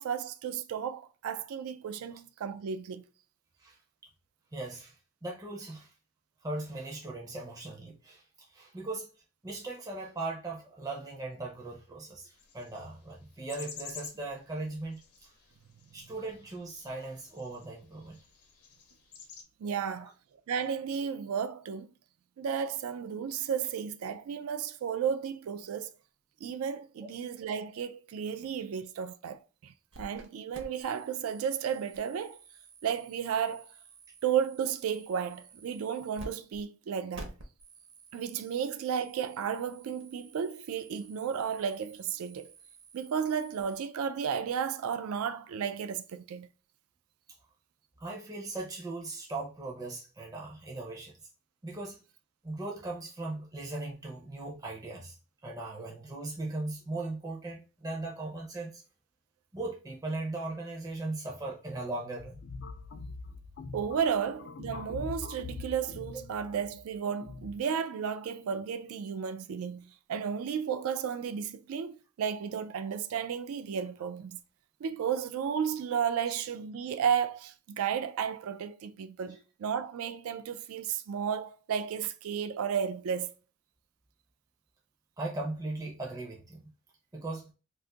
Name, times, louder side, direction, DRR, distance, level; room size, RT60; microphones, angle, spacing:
voice 1, 0.0-3.0 19.6-20.1 20.5-21.9 22.4-25.9 26.4-32.4 32.8-33.7 34.2-37.3 38.1-42.5 42.9-46.5 63.7-74.4 74.8-83.3, right 7 dB, 75° right, 0.3 m, -33 dB
voice 2, 4.5-5.0 5.2-5.9 6.4-9.1 9.4-15.3 15.9-18.2 20.0-20.1 48.0-51.1 51.6-52.0 52.4-55.2 55.4-58.8 59.5-62.4 85.2-86.7 87.1-87.5, right 2 dB, 15° right, 0.5 m, -38 dB
sound 1, 12.3-19.4, left 6 dB, 85° left, 0.8 m, -50 dB
sound 2, 29.9-30.3 30.5-36.3 36.5-36.6 37.1-43.8, right 2 dB, 55° right, 0.7 m, -52 dB
sound 3, 62.2-67.6, left 4 dB, 50° left, 0.3 m, -43 dB
2.5 x 2.4 x 3.8 m
head